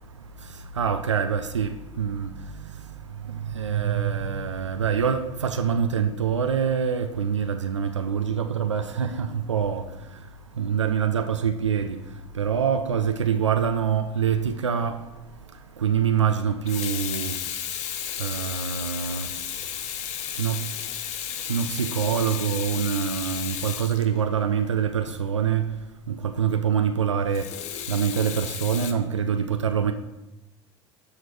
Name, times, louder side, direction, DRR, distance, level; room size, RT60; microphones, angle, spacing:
voice 1, 0.7-2.3 3.3-9.9 10.6-12.0 12.3-15.0 15.8-17.4 18.2-19.3 20.4-20.6 21.5-25.7 26.1-27.5 27.9-29.9, right 7 dB, 90° right, 0.4 m, -25 dB
Water tap faucet / Sink (filling or washing), 15.0-15.1 16.5-24.7 27.3-28.9, left 9 dB, 50° left, 0.8 m, -33 dB
12.5 x 4.9 x 3.2 m
figure-of-eight pair, 70°, 15 cm